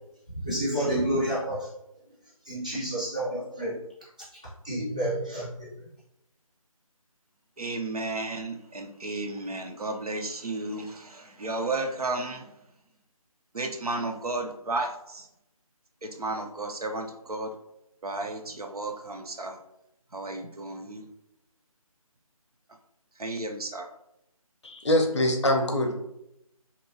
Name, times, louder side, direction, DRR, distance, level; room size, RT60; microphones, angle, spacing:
voice 1, 0.3-1.7 2.5-3.7 4.6-5.7, right 1 dB, 10° right, -9 dB, 0.4 m, -29 dB
voice 2, 7.6-12.5 13.5-15.3 16.0-17.5 18.0-19.6 20.1-21.1 23.2-23.9, right 2 dB, 85° right, 4 dB, 0.5 m, -33 dB
voice 3, 24.6-25.9, left 1 dB, 50° left, 3 dB, 0.5 m, -24 dB
2.9 x 2.2 x 2.7 m, 0.81 s
figure-of-eight pair, 160°, 19 cm